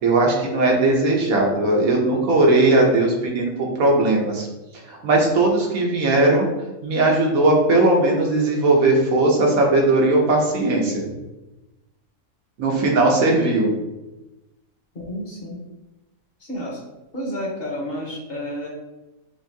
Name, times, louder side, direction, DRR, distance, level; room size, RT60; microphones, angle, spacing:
voice 1, 0.0-4.5 4.7-6.5 6.8-11.1 12.6-13.7, right 2 dB, 80° right, -1 dB, 1.4 m, -18 dB
voice 2, 14.9-15.6 16.4-16.8 17.1-18.7, equal, 45° left, -3 dB, 1.2 m, -30 dB
6.9 x 2.7 x 2.7 m, 1.0 s
omnidirectional pair, 1.4 m